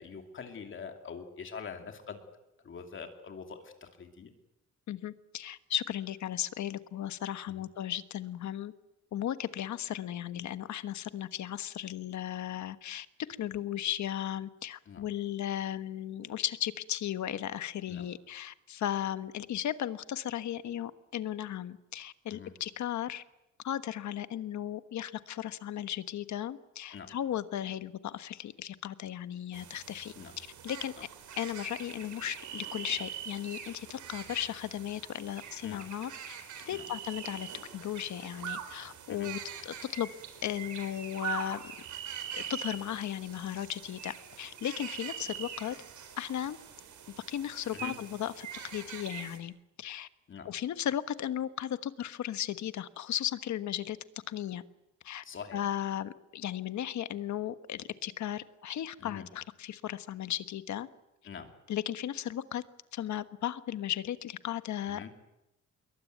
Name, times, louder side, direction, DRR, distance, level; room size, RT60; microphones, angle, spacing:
voice 1, 0.0-2.2 2.6-4.3 14.9-15.1 17.9-18.1 22.3-22.5 26.9-27.1 30.2-30.4 31.0-31.1 35.6-35.9 36.7-36.9 39.1-39.3 47.7-47.9 50.3-50.5 55.2-55.6 59.0-59.2 61.2-61.5 64.9-65.1, left 6 dB, 40° left, 5 dB, 2.7 m, -44 dB
voice 2, 4.9-8.7 9.1-13.1 13.4-23.2 23.6-30.9 31.4-36.3 36.7-37.5 37.7-40.1 40.4-41.7 42.3-45.8 46.2-46.6 47.3-48.5 48.7-49.5 49.8-50.1 50.5-54.0 54.3-54.6 55.0-55.2 55.5-60.9 61.7-62.6 62.9-65.1, left 11 dB, 65° left, 12 dB, 1.3 m, -36 dB
sound 1, 29.5-49.4, right 9 dB, 70° right, 4.1 m, -43 dB
26.5 x 22.5 x 9.3 m, 0.90 s
wide cardioid pair, 170°, 31 cm